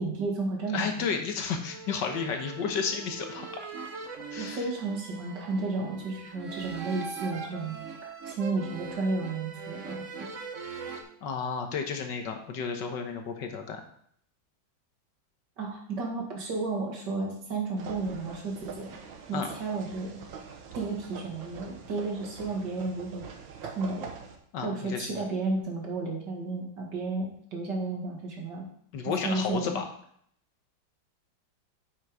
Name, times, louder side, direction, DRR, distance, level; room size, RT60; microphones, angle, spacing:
voice 1, 0.0-1.1 4.4-10.0 15.6-18.9 19.3-20.2 20.7-23.2 23.6-24.1 24.6-28.6 29.2-29.8, right 3 dB, 65° right, 0 dB, 2.4 m, -32 dB
voice 2, 0.7-3.5 4.3-4.7 11.2-13.8 19.3-19.5 24.5-25.2 28.9-29.8, left 6 dB, 70° left, 5 dB, 1.7 m, -32 dB
sound 1, 1.5-11.0, right 5 dB, 50° right, 1.1 m, -41 dB
sound 2, 17.8-24.4, right 6 dB, 85° right, 1.7 m, -44 dB
8.1 x 6.1 x 4.9 m, 0.65 s
omnidirectional pair, 2.0 m